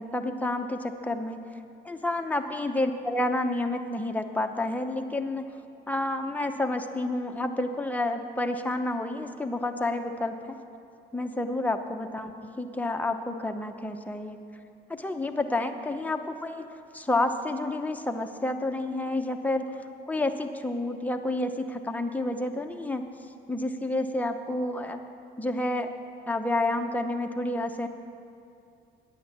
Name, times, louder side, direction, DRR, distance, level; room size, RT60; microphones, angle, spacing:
voice 1, 0.0-1.5 1.8-5.4 5.9-10.6 11.1-14.4 14.9-16.7 16.9-19.7 20.1-23.0 23.5-25.0 25.4-25.9 26.3-27.9, left 2 dB, 10° left, 5 dB, 0.8 m, -29 dB
9.5 x 8.7 x 7.3 m, 2.5 s
cardioid pair, 90°, 20 cm